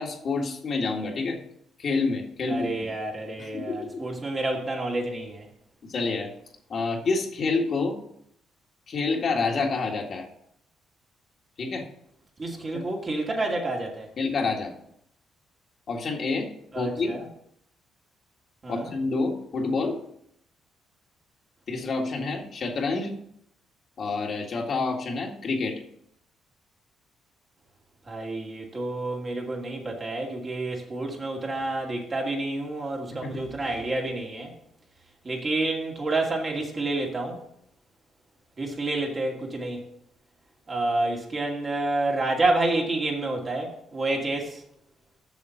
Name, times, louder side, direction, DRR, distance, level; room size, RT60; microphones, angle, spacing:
voice 1, 0.0-1.4 1.8-3.0 3.4-4.0 5.8-6.3 6.7-8.0 8.9-10.3 11.6-11.9 12.7-12.8 14.2-14.7 15.9-16.5 16.8-17.2 18.7-20.0 21.7-23.1 24.0-25.8 33.2-33.4, left 3 dB, 55° left, 1.9 m, -28 dB
voice 2, 2.5-5.4 12.4-14.1 16.7-17.2 18.6-18.9 28.1-34.5 35.2-37.4 38.6-39.9 40.7-44.6, right 2 dB, 35° right, 2.2 m, -29 dB
7.2 x 6.6 x 5.8 m
cardioid pair, 90°, 0 cm